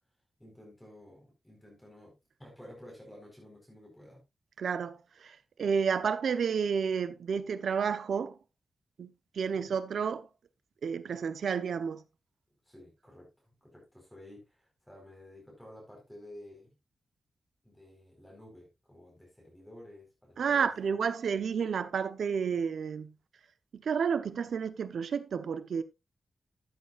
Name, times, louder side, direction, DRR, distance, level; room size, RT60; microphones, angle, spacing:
voice 1, 0.4-2.1 2.4-4.2 9.4-9.8 12.7-16.7 17.6-21.0, left 1 dB, 5° left, 4.6 m, -52 dB
voice 2, 4.6-8.4 9.0-10.3 10.8-12.0 20.4-23.1 23.7-25.8, right 6 dB, 85° right, 0.9 m, -31 dB
13.5 x 8.3 x 2.5 m
wide cardioid pair, 160°, 0 cm